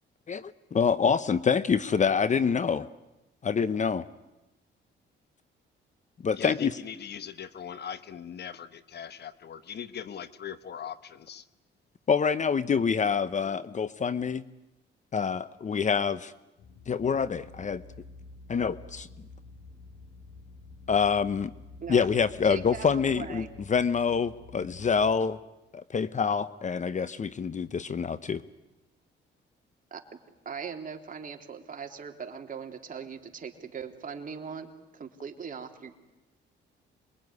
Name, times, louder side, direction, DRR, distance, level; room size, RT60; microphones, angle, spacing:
voice 1, 0.3-2.9 3.4-4.0 6.2-6.7 12.1-14.4 15.1-16.3 16.9-17.8 18.5-19.1 20.9-21.5 21.9-25.4 25.7-28.4, left 6 dB, 40° left, 15 dB, 0.9 m, -26 dB
voice 2, 6.4-11.4, left 8 dB, 55° left, 13 dB, 1.2 m, -40 dB
sound 1, 16.6-25.2, left 3 dB, 80° left, 5.0 m, -49 dB
voice 3, 22.4-23.5 29.9-30.2 30.4-35.9, right 6 dB, 45° right, 4 dB, 3.1 m, -40 dB
26.5 x 22.5 x 9.7 m, 0.97 s
cardioid pair, 90°, 20 cm